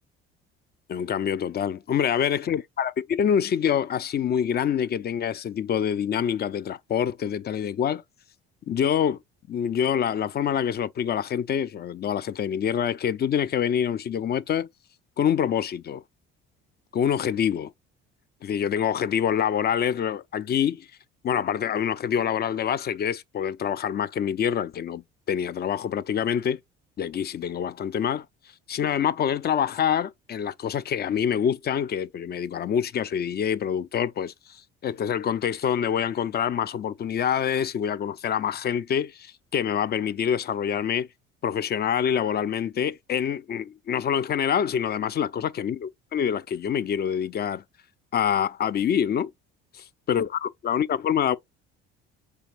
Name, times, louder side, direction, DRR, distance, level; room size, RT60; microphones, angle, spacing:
voice 1, 0.9-8.0 8.7-9.2 9.5-14.7 15.2-16.0 16.9-17.7 18.4-20.9 21.2-26.6 27.0-28.2 28.7-41.1 41.4-47.6 48.1-49.3 49.7-51.4, left 8 dB, 35° left, 0.4 m, -26 dB
4.4 x 3.4 x 3.2 m
hypercardioid pair, 65°, 30 cm